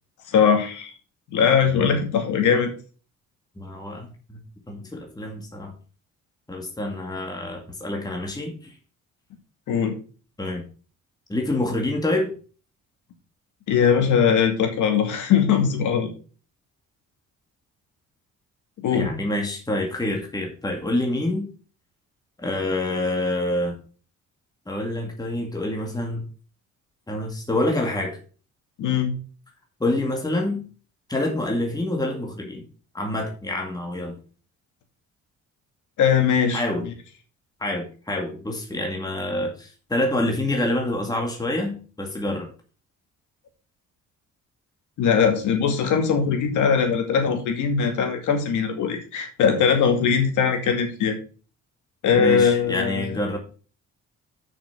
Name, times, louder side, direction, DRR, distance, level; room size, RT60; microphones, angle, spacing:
voice 1, 0.3-0.9 1.3-2.7 9.7-10.0 13.7-16.1 18.8-19.1 28.8-29.1 36.0-36.6 45.0-51.2 52.0-53.2, left 7 dB, 80° left, 4 dB, 2.3 m, -20 dB
voice 2, 1.7-2.1 3.6-4.4 4.7-5.7 6.5-8.7 10.4-10.6 11.3-12.3 18.9-21.5 22.4-23.8 24.7-26.2 27.1-28.2 29.8-30.6 31.1-32.6 32.9-34.2 36.5-36.9 37.6-42.5 52.2-53.4, left 1 dB, 15° left, 1 dB, 2.1 m, -27 dB
6.9 x 6.2 x 5.9 m, 0.38 s
cardioid pair, 90°, 30 cm